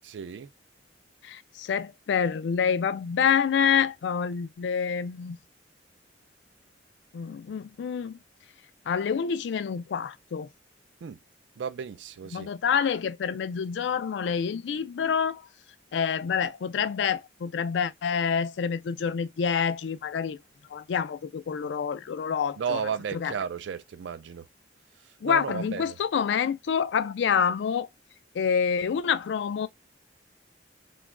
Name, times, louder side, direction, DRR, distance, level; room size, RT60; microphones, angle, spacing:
voice 1, 0.0-0.5 11.0-11.2 11.6-12.5 22.6-24.5 25.0-26.0, right 6 dB, 75° right, 0.4 m, -34 dB
voice 2, 1.2-5.4 7.1-8.2 8.9-10.5 12.3-15.4 15.9-20.4 20.7-22.8 23.1-23.3 25.2-27.9 28.3-29.7, left 7 dB, 75° left, 0.3 m, -27 dB
3.0 x 2.3 x 3.5 m
head